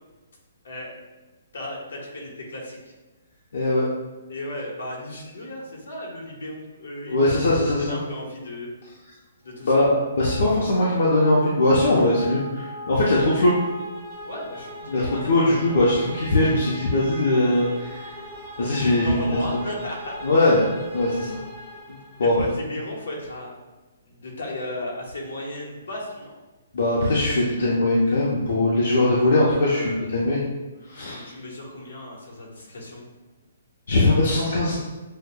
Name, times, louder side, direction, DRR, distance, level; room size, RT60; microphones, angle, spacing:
voice 1, 1.5-2.8 4.3-8.7 9.4-9.9 14.2-15.8 18.9-20.2 22.2-23.5 24.0-26.3 29.6-30.0 31.0-33.1, left 1 dB, 80° left, -2 dB, 1.2 m, -35 dB
voice 2, 3.5-3.8 7.1-8.0 9.6-13.6 14.9-15.0 15.3-18.1 18.6-19.4 20.2-21.4 21.9-22.3 26.7-30.4 30.9-31.2 33.9-34.8, left 1 dB, 65° left, -6 dB, 0.7 m, -21 dB
sound 1, 9.7-22.5, equal, ahead, 0.7 m, -39 dB
6.3 x 2.2 x 2.2 m, 1.2 s
hypercardioid pair, 175°, 0 cm